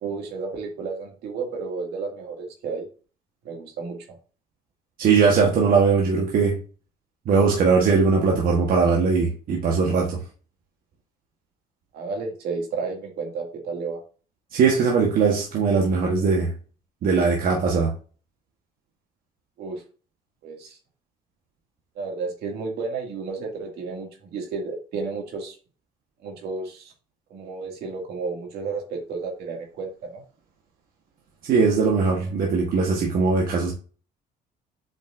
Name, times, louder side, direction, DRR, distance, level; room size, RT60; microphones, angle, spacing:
voice 1, 0.0-2.9 3.4-4.0 11.9-14.0 19.6-19.8 20.4-20.8 22.0-25.6 26.2-26.9 27.3-30.2, right 4 dB, 75° right, 2.2 m, -32 dB
voice 2, 5.0-6.6 7.2-10.2 14.5-16.5 17.0-17.9 31.5-33.7, right 5 dB, 60° right, 1.3 m, -20 dB
7.4 x 5.3 x 2.6 m
cardioid pair, 110°, 17 cm